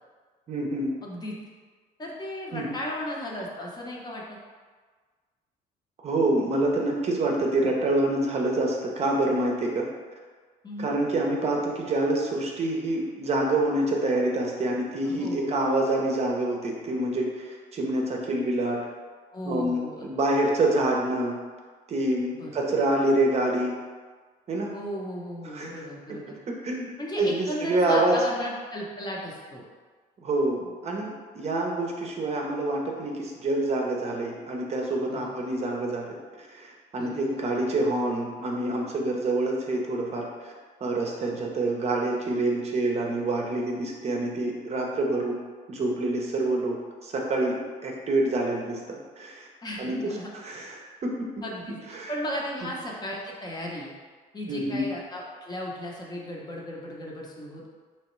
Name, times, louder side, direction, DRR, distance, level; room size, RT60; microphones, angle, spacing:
voice 1, 0.5-0.9 2.5-2.7 6.0-9.9 10.8-18.8 19.5-21.4 21.9-23.8 24.5-24.7 25.5-25.7 26.3-26.9 27.2-28.2 30.2-40.5 40.8-45.4 45.7-49.5 49.8-50.0 50.4-51.3 51.9-52.1 54.5-54.8, right 2 dB, 40° right, 0 dB, 0.6 m, -27 dB
voice 2, 1.0-1.4 2.0-4.4 10.6-10.9 15.0-15.6 19.3-20.4 22.3-22.8 24.7-26.4 27.0-29.6 35.1-35.3 37.0-37.4 49.6-50.3 51.4-53.9 54.3-57.7, equal, 25° left, -3 dB, 0.6 m, -35 dB
3.4 x 3.0 x 3.0 m, 1.5 s
cardioid pair, 110°, 17 cm